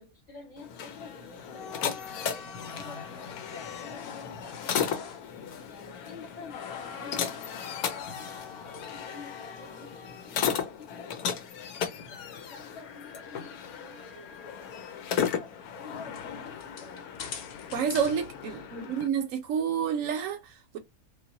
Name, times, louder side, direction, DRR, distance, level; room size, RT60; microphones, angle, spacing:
voice 1, 0.0-5.1 5.7-8.3 8.7-11.1 12.1-17.1 18.4-19.0, left 3 dB, 35° left, 1.4 m, -49 dB
sound 1, 0.6-19.1, left 7 dB, 85° left, 1.2 m, -36 dB
sound 2, 1.4-6.2 6.5-10.8 12.1-14.8 15.3-15.4 16.1-19.1, left 7 dB, 65° left, 0.6 m, -45 dB
voice 2, 17.7-20.8, right 7 dB, 70° right, 0.9 m, -29 dB
3.9 x 2.2 x 2.6 m
omnidirectional pair, 1.5 m